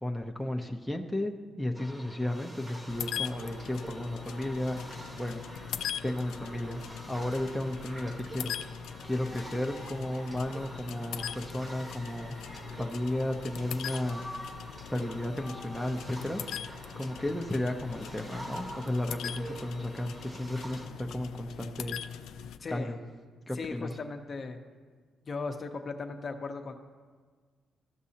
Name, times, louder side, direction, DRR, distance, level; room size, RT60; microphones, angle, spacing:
voice 1, 0.0-4.8 5.2-5.4 6.0-6.8 7.1-8.6 9.0-12.3 12.8-14.2 14.9-16.4 17.0-20.1 20.4-22.0 22.7-23.0 23.5-23.9, left 1 dB, 5° left, 2 dB, 0.6 m, -33 dB
sound 1, 1.8-20.9, right 1 dB, 30° right, 1.2 m, -46 dB
sound 2, 2.9-22.6, left 9 dB, 80° left, 0.3 m, -41 dB
voice 2, 22.6-23.0 23.5-24.6 25.2-26.7, left 4 dB, 40° left, 5 dB, 0.7 m, -37 dB
14.0 x 6.1 x 2.8 m, 1.5 s
cardioid pair, 90°, 0 cm